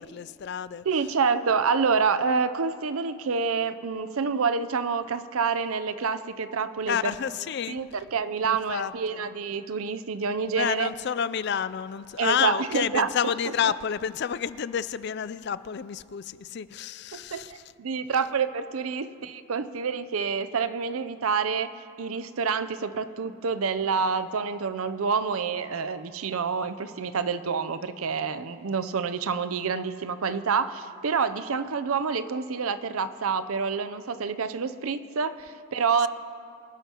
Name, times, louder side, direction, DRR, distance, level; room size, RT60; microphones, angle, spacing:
voice 1, 0.1-0.8 6.9-7.8 8.4-9.2 10.6-17.5, left 8 dB, 50° left, 16 dB, 0.3 m, -29 dB
voice 2, 0.8-7.1 7.7-10.9 12.2-13.5 17.1-21.7 22.0-36.1, right 5 dB, 85° right, 12 dB, 0.6 m, -28 dB
24.5 x 11.5 x 3.0 m, 2.4 s
head